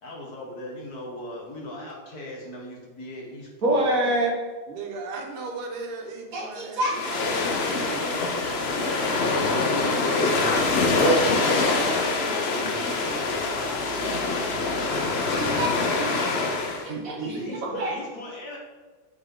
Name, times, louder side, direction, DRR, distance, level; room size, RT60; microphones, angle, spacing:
voice 1, 0.0-4.1 7.8-15.5 17.3-18.6, left 1 dB, 50° left, -1 dB, 1.7 m, -38 dB
voice 2, 3.6-4.4 6.3-7.6 11.0-11.2 12.6-12.7 14.0-14.1 14.9-15.1 15.4-16.3 16.8-18.0, right 2 dB, 45° right, -1 dB, 1.8 m, -27 dB
voice 3, 4.7-8.3, right 3 dB, 90° right, 2 dB, 2.2 m, -37 dB
sound 1, 6.9-16.9, left 3 dB, 85° left, 0.5 m, -25 dB
9.1 x 5.8 x 3.8 m, 1.4 s
omnidirectional pair, 2.3 m